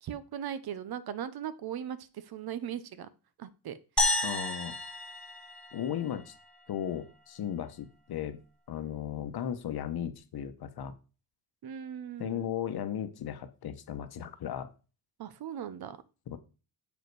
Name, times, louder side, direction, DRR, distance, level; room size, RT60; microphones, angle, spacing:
voice 1, 0.0-3.1 3.4-4.1 11.6-12.5 15.2-16.0, right 9 dB, 60° right, 15 dB, 0.8 m, -39 dB
sound 1, 4.0-6.4, left 2 dB, ahead, 1.3 m, -31 dB
voice 2, 4.2-4.7 5.7-6.3 6.7-8.4 8.7-10.9 12.2-14.7 16.3-16.4, left 9 dB, 60° left, 10 dB, 1.0 m, -36 dB
7.2 x 5.2 x 4.7 m, 0.33 s
cardioid pair, 135°, 42 cm